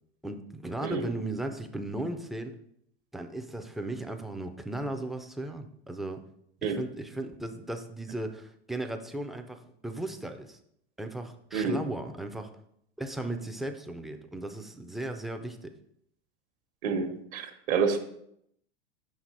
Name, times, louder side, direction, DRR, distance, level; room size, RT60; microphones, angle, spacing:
voice 1, 0.2-2.6 3.1-6.2 6.6-10.6 11.0-12.5 13.0-15.7, right 2 dB, ahead, 5 dB, 0.3 m, -36 dB
voice 2, 16.8-18.0, right 5 dB, 60° right, 6 dB, 1.1 m, -28 dB
5.7 x 4.2 x 4.5 m, 0.73 s
hypercardioid pair, 110°, 33 cm